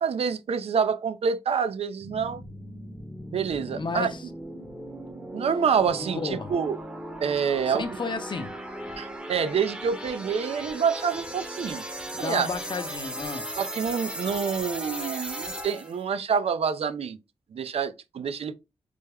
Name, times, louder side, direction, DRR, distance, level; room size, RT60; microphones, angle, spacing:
voice 1, 0.0-2.4 3.3-4.1 5.3-6.8 7.2-8.0 9.0-11.9 12.2-12.5 13.6-17.2 17.5-18.5, right 6 dB, 65° right, 0.4 m, -27 dB
sound 1, 2.0-16.0, right 1 dB, 10° right, 0.7 m, -37 dB
voice 2, 3.7-4.2 6.1-6.5 7.7-8.6 12.1-13.5, left 4 dB, 45° left, 0.6 m, -32 dB
3.4 x 2.1 x 3.4 m
cardioid pair, 65°, 11 cm